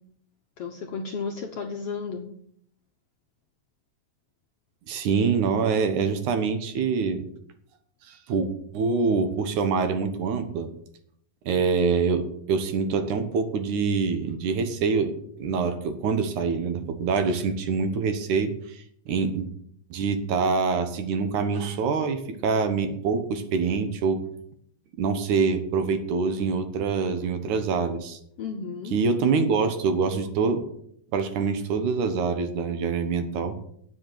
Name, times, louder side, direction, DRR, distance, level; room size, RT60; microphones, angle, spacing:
voice 1, 0.6-2.2 28.4-29.0, left 5 dB, 65° left, 3 dB, 1.5 m, -33 dB
voice 2, 4.9-7.3 8.0-10.7 11.5-15.1 15.4-19.5 19.9-24.2 25.0-28.2 28.9-30.6 31.1-33.6, right 5 dB, 70° right, 8 dB, 2.5 m, -25 dB
9.5 x 7.7 x 7.6 m, 0.67 s
omnidirectional pair, 3.8 m